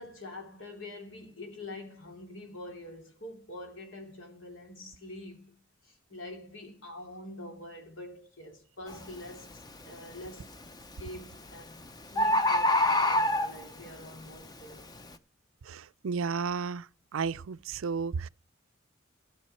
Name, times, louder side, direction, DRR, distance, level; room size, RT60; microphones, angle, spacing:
voice 1, 0.0-5.6 5.8-10.5 11.0-14.9, left 1 dB, 75° left, 3.2 m, -45 dB
Bird, 8.9-9.1 9.7-10.1 11.1-11.2 11.5-11.6 11.8-11.9 12.2-13.9 14.5-14.6, left 1 dB, 20° left, 0.7 m, -25 dB
voice 2, 15.7-16.9 17.1-18.3, right 5 dB, 90° right, 0.5 m, -32 dB
15.0 x 7.0 x 4.4 m
head